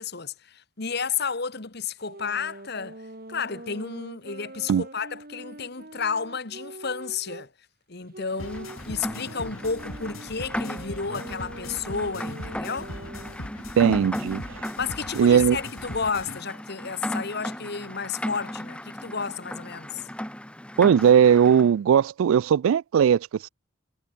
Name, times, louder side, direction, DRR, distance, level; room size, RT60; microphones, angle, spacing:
voice 1, 0.0-3.0 3.3-7.5 7.9-12.9 14.8-20.0, left 5 dB, 50° left, 1.5 m, -32 dB
sound 1, 2.0-7.5 8.1-13.5, right 1 dB, 45° right, 2.5 m, -44 dB
sound 2, 8.4-16.4, left 1 dB, 90° left, 6.0 m, -41 dB
Rain, 8.4-21.7, equal, 5° left, 2.9 m, -36 dB
voice 2, 13.8-14.4 15.2-15.6 20.8-23.5, right 8 dB, 75° right, 0.3 m, -18 dB
head